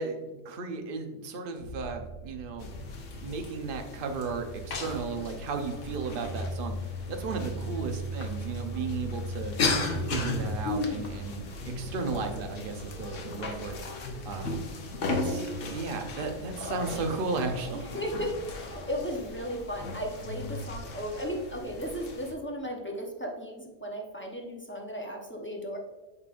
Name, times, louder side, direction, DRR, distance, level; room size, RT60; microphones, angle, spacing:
voice 1, 0.0-2.7 3.2-6.7 7.1-9.6 10.1-13.8 14.3-14.6 15.0-17.8, right 4 dB, 50° right, 5 dB, 0.9 m, -34 dB
sound 1, 1.6-4.2, right 1 dB, 45° left, 1.0 m, -47 dB
sound 2, 2.6-22.3, left 2 dB, 75° left, 1.2 m, -35 dB
voice 2, 7.5-7.9 17.7-25.8, equal, 10° left, 0 dB, 0.7 m, -35 dB
8.3 x 5.2 x 2.5 m, 1.2 s
omnidirectional pair, 1.3 m